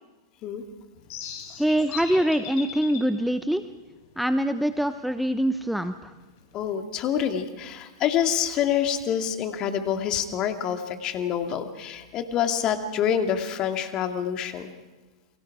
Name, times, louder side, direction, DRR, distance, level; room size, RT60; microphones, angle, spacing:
sound 1, 0.9-6.8, left 7 dB, 50° left, 4.7 m, -42 dB
voice 1, 1.6-3.6 4.2-6.1, right 1 dB, ahead, 11 dB, 0.8 m, -24 dB
voice 2, 6.5-14.7, left 9 dB, 35° left, 6 dB, 2.3 m, -27 dB
29.5 x 23.0 x 4.9 m, 1.2 s
figure-of-eight pair, 100°, 2 cm